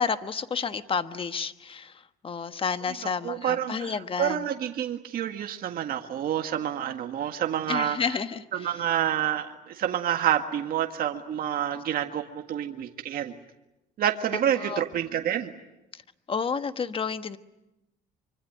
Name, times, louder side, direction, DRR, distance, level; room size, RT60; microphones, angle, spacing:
voice 1, 0.0-4.5 7.7-8.7 14.6-14.8 15.9-16.0 16.3-17.4, left 6 dB, 30° left, 10 dB, 1.4 m, -30 dB
voice 2, 3.2-8.0 8.5-13.4 14.0-15.5, right 10 dB, 60° right, 5 dB, 1.7 m, -28 dB
25.0 x 25.0 x 9.3 m, 0.94 s
cardioid pair, 110°, 17 cm